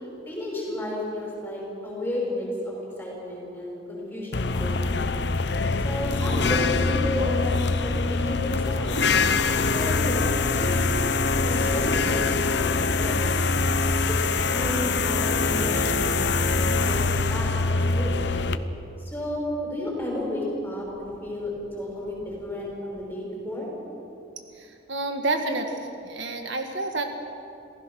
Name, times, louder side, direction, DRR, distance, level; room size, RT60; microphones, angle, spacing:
voice 1, 0.3-5.3 5.8-7.5 7.8-9.0 9.5-10.9 11.3-13.3 14.0-18.4 19.0-21.5 21.8-23.7, left 1 dB, 10° left, -3 dB, 5.9 m, -32 dB
sound 1, 4.3-18.6, left 3 dB, 65° left, 0.8 m, -24 dB
sound 2, 18.8-23.0, equal, 40° left, 3.8 m, -46 dB
voice 2, 24.6-25.8 26.0-27.1, right 2 dB, 75° right, 5 dB, 1.7 m, -29 dB
27.0 x 16.0 x 6.3 m, 2.8 s
head